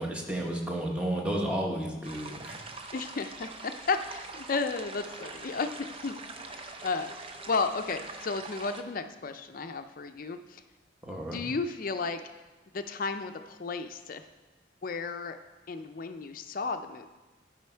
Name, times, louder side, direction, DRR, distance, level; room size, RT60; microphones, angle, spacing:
voice 1, 0.0-2.6 11.0-11.4, right 1 dB, 5° right, -1 dB, 1.1 m, -32 dB
sound 1, 2.0-8.8, right 3 dB, 30° right, 0.6 m, -43 dB
voice 2, 2.9-5.7 6.0-6.2 6.4-10.6 11.3-12.2 12.7-14.2 14.8-15.4 15.7-17.1, left 4 dB, 50° left, 8 dB, 0.5 m, -33 dB
12.0 x 5.1 x 4.5 m, 1.2 s
head